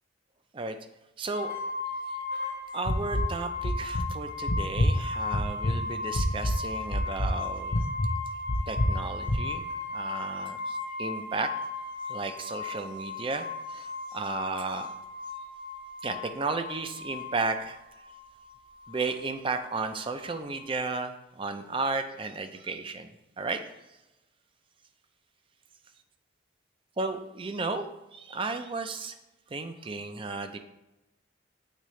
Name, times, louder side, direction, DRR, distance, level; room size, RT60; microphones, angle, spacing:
voice 1, 1.2-1.5 2.7-7.8 8.7-9.6 9.9-11.5 12.1-14.9 16.0-17.8 18.9-23.6 27.0-27.9 28.1-29.2 29.5-30.6, right 3 dB, 30° right, 8 dB, 0.4 m, -34 dB
sound 1, 1.3-20.7, left 3 dB, 55° right, 1.1 m, -37 dB
sound 2, 2.9-3.3 3.6-4.0 4.5-4.9 5.3-5.8 6.1-6.6 6.9-7.4 7.7-8.1 8.5-9.0 9.3-9.4, equal, 45° left, 0.6 m, -26 dB
8.3 x 3.7 x 3.1 m, 0.97 s
head